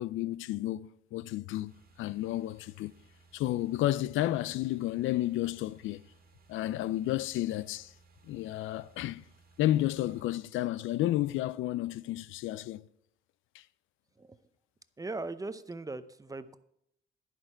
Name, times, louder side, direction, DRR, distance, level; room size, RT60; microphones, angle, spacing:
voice 1, 0.0-1.7 2.0-2.9 3.3-6.0 6.5-7.9 8.3-9.2 9.6-12.9 13.5-13.6, left 14 dB, 80° left, 0.4 m, -31 dB
sound 1, 1.7-10.2, right 3 dB, 50° right, 1.8 m, -62 dB
voice 2, 15.0-16.6, right 3 dB, 15° right, 0.7 m, -39 dB
11.0 x 10.5 x 4.5 m
cardioid pair, 90°, 20 cm